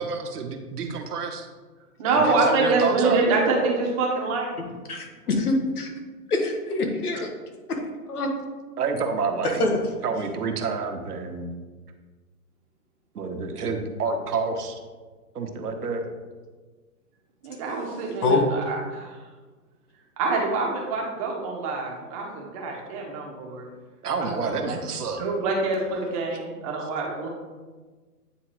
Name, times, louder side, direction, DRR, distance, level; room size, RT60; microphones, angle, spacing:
voice 1, 0.0-1.5 2.0-3.2 8.8-9.7 10.0-11.5 13.1-14.7 15.3-16.0 24.0-25.2, right 4 dB, 70° right, 3 dB, 1.1 m, -28 dB
voice 2, 2.0-4.7 17.4-19.2 20.2-23.6 24.2-24.3 24.6-24.7 25.2-27.3, right 3 dB, 20° right, -1 dB, 0.9 m, -25 dB
voice 3, 4.9-5.9 6.3-7.3 8.1-8.3 9.6-9.8 18.2-18.4, left 2 dB, 70° left, 2 dB, 1.4 m, -24 dB
9.0 x 3.7 x 3.0 m, 1.4 s
hypercardioid pair, 140°, 47 cm